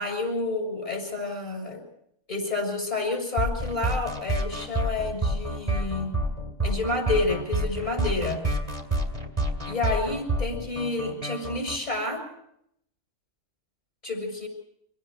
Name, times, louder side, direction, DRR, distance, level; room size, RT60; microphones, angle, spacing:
voice 1, 0.0-1.8 2.3-6.1 6.6-8.4 9.7-12.2 14.0-14.5, left 3 dB, 35° left, 5 dB, 6.6 m, -29 dB
sound 1, 3.4-11.8, right 1 dB, 30° right, 2.6 m, -28 dB
26.0 x 17.0 x 6.4 m, 0.75 s
omnidirectional pair, 1.3 m